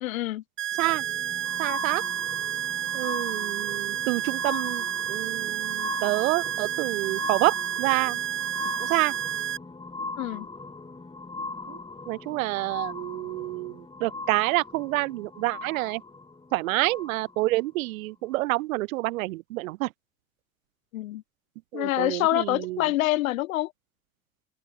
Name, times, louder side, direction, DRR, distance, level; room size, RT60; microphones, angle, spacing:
voice 1, 0.0-0.4 10.2-10.5 20.9-21.2 21.7-23.7, left 16 dB, 80° left, 1.0 m, -26 dB
sound 1, 0.6-9.6, right 11 dB, 30° right, 0.6 m, -30 dB
sound 2, 0.7-17.6 18.3-18.4, left 3 dB, 10° left, 1.9 m, -39 dB
voice 2, 1.6-2.0 2.9-8.2 8.8-9.1 11.7-11.8 12.1-16.0 16.5-19.9 21.7-22.8, right 20 dB, 75° right, 0.5 m, -28 dB
open air
hypercardioid pair, 65°, 41 cm